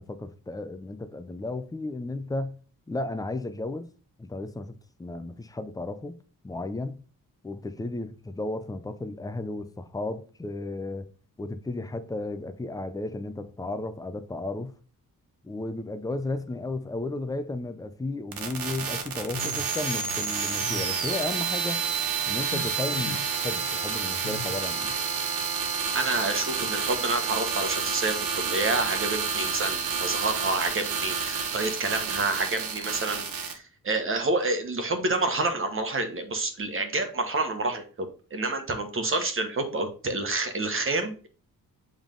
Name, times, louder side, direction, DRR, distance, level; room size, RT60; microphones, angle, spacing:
voice 1, 0.0-2.6 2.9-3.9 4.2-6.2 6.4-7.0 7.4-11.1 11.4-14.7 15.4-21.9 22.2-25.0, left 2 dB, 10° left, 0.5 m, -34 dB
sound 1, 18.3-33.5, right 6 dB, 75° right, 1.1 m, -31 dB
sound 2, 19.3-20.2 20.6-20.9 21.2-21.7 22.4-23.3 24.2-24.6, left 4 dB, 85° left, 1.4 m, -40 dB
sound 3, 19.4-33.0, right 6 dB, 60° right, 1.1 m, -35 dB
voice 2, 25.9-41.3, right 2 dB, 35° right, 1.3 m, -28 dB
7.2 x 3.6 x 3.7 m
wide cardioid pair, 115°, 35 cm